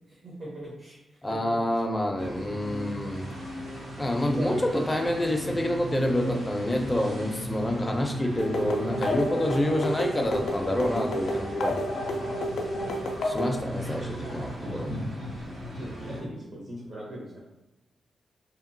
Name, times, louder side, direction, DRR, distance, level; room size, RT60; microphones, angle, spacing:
voice 1, 0.1-1.6 4.1-4.6 15.8-17.6, right 1 dB, 55° right, -6 dB, 0.7 m, -39 dB
voice 2, 1.2-3.3 4.0-11.8 13.2-14.9, left 1 dB, 15° left, 1 dB, 0.4 m, -27 dB
sound 1, 2.2-16.2, right 1 dB, 90° right, 0.8 m, -37 dB
sound 2, 8.4-13.6, left 1 dB, 85° left, 0.4 m, -31 dB
2.8 x 2.3 x 2.6 m, 0.98 s
cardioid pair, 90°, 0 cm